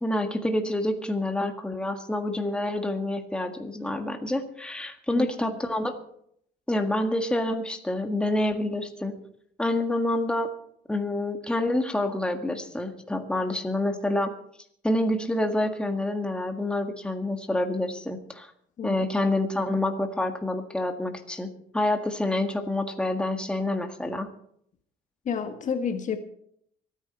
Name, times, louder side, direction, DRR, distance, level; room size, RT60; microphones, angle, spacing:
voice 1, 0.0-6.0 6.7-9.1 9.6-10.5 10.9-14.3 14.8-18.5 18.8-24.3, left 1 dB, 5° left, 5 dB, 1.7 m, -27 dB
voice 2, 25.2-26.2, left 6 dB, 50° left, 7 dB, 1.6 m, -29 dB
24.5 x 9.6 x 4.3 m, 0.67 s
cardioid pair, 110°, 17 cm